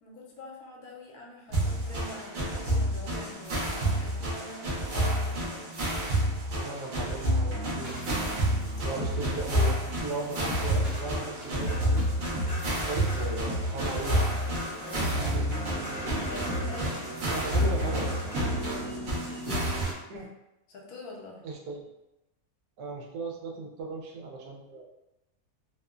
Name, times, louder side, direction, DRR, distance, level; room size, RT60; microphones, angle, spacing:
voice 1, 0.0-5.7 14.8-15.4 16.3-17.1 18.9-19.2 20.7-21.4, left 2 dB, 75° left, -2 dB, 1.1 m, -45 dB
sound 1, 1.5-19.8, right 1 dB, 70° right, 0.4 m, -29 dB
voice 2, 6.5-8.2 8.8-12.0 12.6-14.6 15.3-15.5 17.3-18.3 20.1-20.3 21.4-21.9 22.8-24.9, right 3 dB, 90° right, 0 dB, 1.1 m, -37 dB
sound 2, 7.7-19.9, equal, 50° right, 0.9 m, -36 dB
sound 3, 10.3-18.5, equal, 50° left, 0.8 m, -41 dB
2.8 x 2.1 x 2.3 m, 0.95 s
omnidirectional pair, 1.6 m